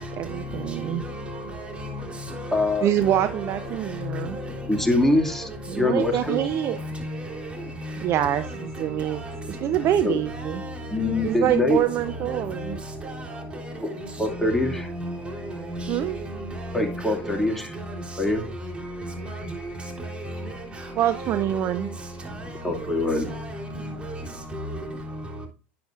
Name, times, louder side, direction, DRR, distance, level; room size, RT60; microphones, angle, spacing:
voice 1, 0.0-1.0 2.8-4.4 5.7-6.8 8.0-10.6 11.2-12.8 15.9-16.2 21.0-21.9, right 11 dB, 45° right, 0.6 m, -25 dB
voice 2, 0.8-2.7 3.0-3.7 4.0-4.4 4.7-4.9 5.3-5.4 6.2-7.4 7.8-8.0 8.3-8.6 9.0-9.4 9.7-9.9 10.3-11.4 12.1-12.7 13.0-13.7 14.3-16.1 16.5-16.9 17.2-17.4 17.8-18.0 18.3-18.5 18.8-19.6 20.0-20.6 21.0-21.4 22.3-22.7 23.2-23.5 23.8-24.9, equal, 15° right, 3.4 m, -34 dB
voice 3, 2.5-2.9 4.7-5.5 5.7-6.4 10.0-10.2 10.9-11.8 14.2-14.9 16.7-17.8 18.2-18.4 22.6-23.3, left 2 dB, 5° left, 2.2 m, -23 dB
10.5 x 7.8 x 2.4 m
hypercardioid pair, 100°, 6 cm